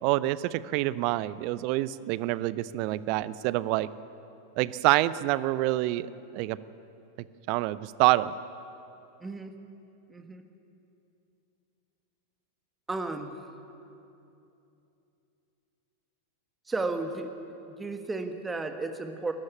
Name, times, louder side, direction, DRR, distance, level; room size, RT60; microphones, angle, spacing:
voice 1, 0.0-3.9 4.6-6.1 6.3-6.6 7.5-8.3, right 17 dB, 45° right, 17 dB, 0.6 m, -26 dB
voice 2, 9.2-9.5 10.1-10.4 12.9-13.4 16.7-17.3 17.7-19.3, right 3 dB, 10° right, 6 dB, 1.6 m, -33 dB
21.5 x 13.0 x 9.7 m, 2.8 s
figure-of-eight pair, 90°, 0 cm